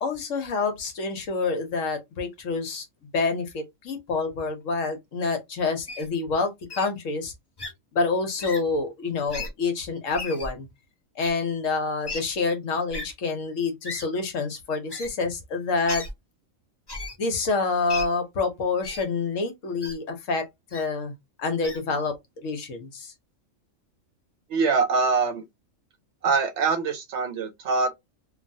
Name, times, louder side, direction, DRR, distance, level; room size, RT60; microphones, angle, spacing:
voice 1, 0.0-2.9 3.1-7.3 7.9-10.7 11.2-16.0 17.2-21.1 21.4-22.1 22.4-23.1, left 4 dB, 70° left, 1.1 m, -27 dB
Wild animals, 5.9-6.1 6.7-6.9 7.6-7.7 8.4-8.6 9.3-9.5 10.1-10.5 11.2-11.3 12.1-12.2 12.9-13.1 13.8-14.1 14.9-15.1 15.9-16.1 16.9-17.2 17.9-18.1 18.8-19.1 19.8-19.9 20.7-20.9 21.6-21.8, left 3 dB, 40° left, 0.3 m, -35 dB
voice 2, 24.5-25.4 26.2-27.9, right 4 dB, 65° right, 0.8 m, -23 dB
3.1 x 2.3 x 2.6 m
omnidirectional pair, 1.4 m